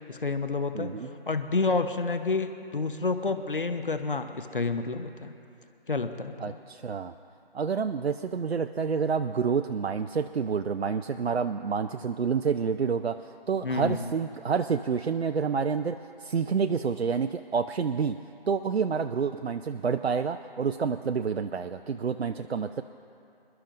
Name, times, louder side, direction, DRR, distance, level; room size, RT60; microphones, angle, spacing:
voice 1, 0.1-0.9 1.3-5.3 5.9-6.5 13.6-14.1, left 3 dB, 60° left, 8 dB, 1.0 m, -29 dB
voice 2, 0.7-1.1 6.4-7.1 7.5-18.2 18.5-22.8, right 6 dB, 85° right, 8 dB, 0.6 m, -28 dB
27.0 x 12.0 x 2.6 m, 2.6 s
figure-of-eight pair, 180°, 31 cm